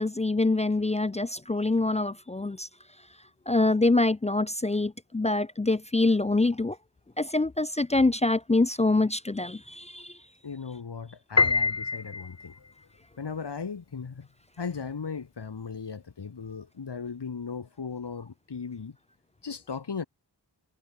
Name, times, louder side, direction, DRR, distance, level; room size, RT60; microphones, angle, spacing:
voice 1, 0.0-2.7 3.5-6.8 7.2-10.2, left 2 dB, 15° left, 0.4 m, -25 dB
voice 2, 10.4-12.7 13.2-14.3 14.6-19.0 19.4-20.0, left 5 dB, 65° left, 3.2 m, -37 dB
Piano, 11.4-12.7, left 4 dB, 35° left, 1.5 m, -25 dB
wide cardioid pair, 85°, 44 cm